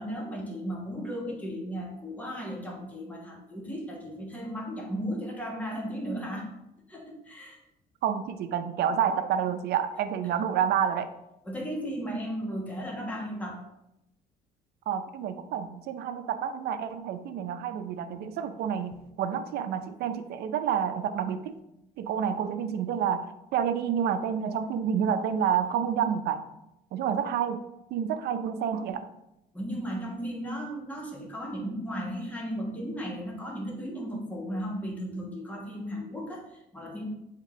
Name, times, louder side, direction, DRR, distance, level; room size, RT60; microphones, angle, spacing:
voice 1, 0.0-6.5 6.9-7.6 11.4-13.6 29.5-37.1, equal, 10° left, -2 dB, 1.3 m, -35 dB
voice 2, 8.0-11.1 14.9-21.5 22.0-26.5 26.9-27.6 27.9-29.1, right 8 dB, 70° right, 9 dB, 0.6 m, -29 dB
7.6 x 3.6 x 3.7 m, 0.87 s
cardioid pair, 110°, 17 cm